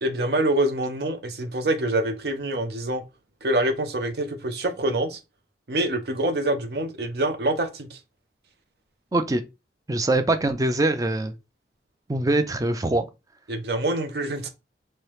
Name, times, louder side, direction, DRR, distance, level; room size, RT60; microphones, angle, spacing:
voice 1, 0.0-3.0 3.4-5.2 5.7-8.0 13.5-14.5, right 1 dB, 60° right, 0.6 m, -25 dB
voice 2, 9.1-9.4 9.9-11.3 12.1-13.1, right 2 dB, 20° right, 0.4 m, -23 dB
3.2 x 2.7 x 3.0 m
head